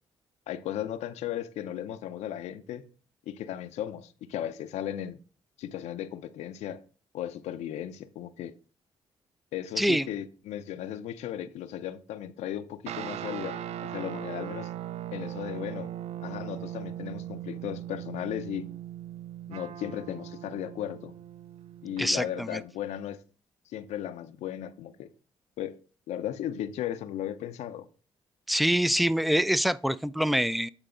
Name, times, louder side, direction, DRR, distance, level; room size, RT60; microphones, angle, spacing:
voice 1, 0.5-2.9 3.3-5.2 5.6-6.8 7.1-8.5 9.5-14.7 15.1-15.9 16.2-18.7 19.5-21.1 21.8-23.2 23.7-25.1 25.6-25.8 26.1-27.9, left 11 dB, 80° left, 0.6 m, -36 dB
sound 1, 12.9-22.6, right 11 dB, 70° right, 0.4 m, -39 dB
voice 2, 22.0-22.6 28.5-30.7, equal, ahead, 0.4 m, -25 dB
8.9 x 4.0 x 3.8 m
supercardioid pair, 60°, 11 cm